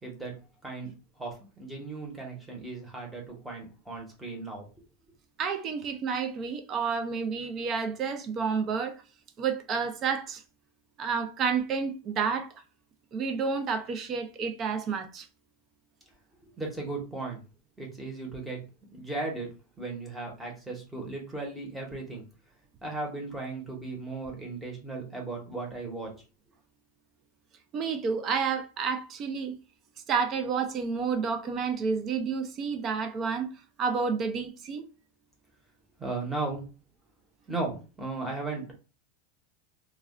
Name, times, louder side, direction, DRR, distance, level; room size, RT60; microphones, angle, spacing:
voice 1, 0.0-0.3 0.6-0.9 1.2-4.7 16.6-17.4 17.8-18.6 18.9-19.5 19.8-22.2 22.8-26.2 36.0-36.6 37.5-38.7, right 3 dB, 5° right, 0.8 m, -36 dB
voice 2, 5.4-8.9 9.4-10.4 11.0-12.5 13.1-15.3 27.7-29.6 30.1-33.5 33.8-34.8, right 5 dB, 30° right, 0.4 m, -30 dB
2.3 x 2.1 x 3.5 m
supercardioid pair, 160°, 0 cm